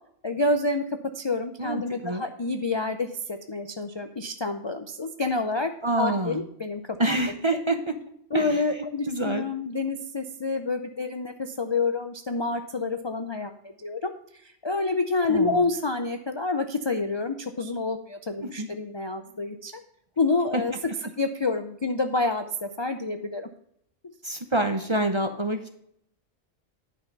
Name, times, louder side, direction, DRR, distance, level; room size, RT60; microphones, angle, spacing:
voice 1, 0.2-0.8 1.2-5.7 6.0-7.2 8.3-13.5 13.8-14.1 14.4-19.8 20.2-20.7 21.2-23.5, left 3 dB, 40° left, 7 dB, 0.4 m, -28 dB
voice 2, 1.6-2.2 5.8-6.4 7.0-8.0 8.3-9.5 15.3-15.6 18.4-18.7 20.5-20.6 24.2-25.7, right 2 dB, 30° right, 7 dB, 0.7 m, -27 dB
10.5 x 5.7 x 5.3 m, 0.71 s
omnidirectional pair, 1.4 m